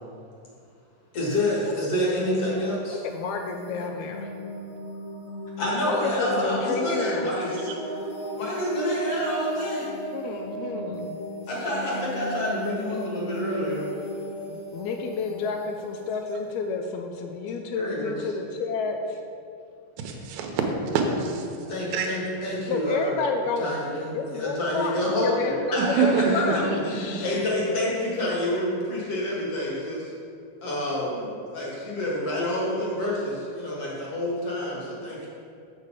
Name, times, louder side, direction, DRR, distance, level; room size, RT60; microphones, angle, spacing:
voice 1, 1.1-3.0 5.6-7.6 8.4-9.9 11.5-13.9 15.3-15.4 17.7-18.2 21.7-23.2 23.6-25.3 25.7-26.4 26.8-30.1 30.6-35.3, left 1 dB, 50° left, -5 dB, 2.4 m, -28 dB
voice 2, 2.9-4.3 5.8-7.3 10.1-11.2 14.5-19.2 22.7-27.4, left 4 dB, 80° left, 4 dB, 1.7 m, -30 dB
sound 1, 2.9-17.6, left 1 dB, 65° left, 2.6 m, -36 dB
voice 3, 20.0-21.5 21.9-22.1 25.8-27.2, right 5 dB, 70° right, 3 dB, 1.9 m, -25 dB
7.2 x 6.5 x 4.9 m, 2.5 s
omnidirectional pair, 3.8 m